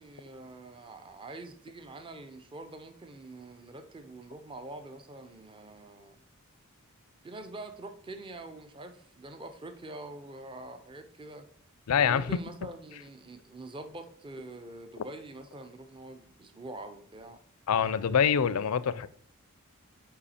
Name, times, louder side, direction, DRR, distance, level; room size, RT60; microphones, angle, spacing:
voice 1, 0.0-6.2 7.2-11.5 12.1-17.4, right 2 dB, 25° right, 0.6 m, -45 dB
voice 2, 11.9-12.4 17.7-19.1, left 7 dB, 75° left, 0.4 m, -25 dB
5.5 x 4.9 x 4.2 m
head